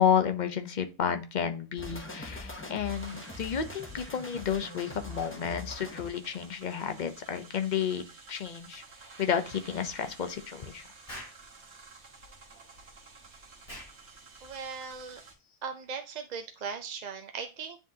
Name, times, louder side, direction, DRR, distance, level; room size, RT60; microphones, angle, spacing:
voice 1, 0.0-8.8 9.2-10.8, left 8 dB, 45° left, 8 dB, 0.8 m, -31 dB
sound 1, 1.8-6.1, left 2 dB, 10° left, 0.8 m, -42 dB
sound 2, 2.8-15.3, right 4 dB, 75° right, 1.5 m, -52 dB
Explosion, 11.1-11.4 13.6-14.0, equal, 30° left, 2.8 m, -43 dB
voice 2, 14.4-15.2 15.6-17.8, right 5 dB, 50° right, 5 dB, 0.5 m, -38 dB
9.8 x 3.7 x 2.7 m, 0.31 s
omnidirectional pair, 1.2 m